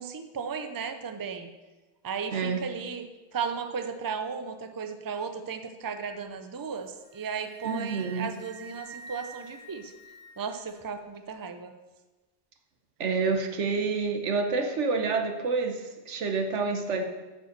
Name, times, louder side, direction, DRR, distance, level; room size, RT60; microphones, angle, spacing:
voice 1, 0.0-1.5 2.0-3.0 3.3-9.9 10.4-11.7, right 6 dB, 25° right, 7 dB, 0.5 m, -35 dB
voice 2, 2.3-2.6 7.6-8.3 13.0-17.0, right 4 dB, 90° right, 5 dB, 1.3 m, -28 dB
Wind instrument woodwind instrument, 6.8-10.7, right 3 dB, 70° left, 2.6 m, -47 dB
8.8 x 5.4 x 6.7 m, 1.2 s
omnidirectional pair, 1.2 m